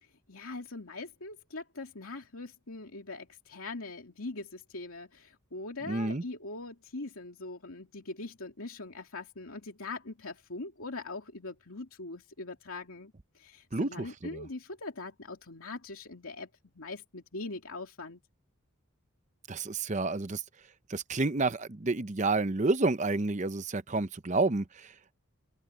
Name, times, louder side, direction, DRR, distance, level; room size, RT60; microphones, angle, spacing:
voice 1, 0.0-16.5 16.7-18.2, left 3 dB, 80° left, 2.6 m, -42 dB
voice 2, 5.9-6.2 13.7-14.1 14.3-14.4 19.5-20.4 20.9-24.6, right 3 dB, 35° right, 0.7 m, -29 dB
open air
head